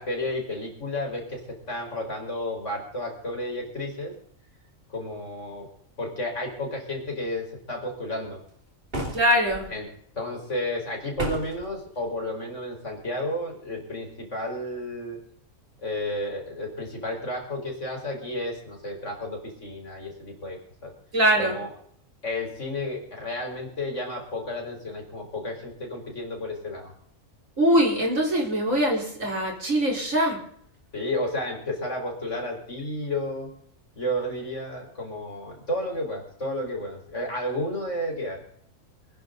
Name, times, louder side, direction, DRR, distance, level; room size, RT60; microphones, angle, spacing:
voice 1, 0.0-4.1 4.9-5.7 6.0-8.4 9.7-9.9 10.1-15.2 15.8-20.6 20.8-20.9 21.4-21.7 22.2-26.9 30.9-33.5 34.0-38.4, left 1 dB, 60° left, 0 dB, 5.4 m, -32 dB
sound 1, 8.9-9.6 11.2-11.7, right 1 dB, 40° right, 3.1 m, -32 dB
voice 2, 9.1-9.7 21.1-21.6 27.6-30.4, equal, 70° right, 0 dB, 4.7 m, -22 dB
26.0 x 11.0 x 4.0 m, 0.66 s
omnidirectional pair, 1.4 m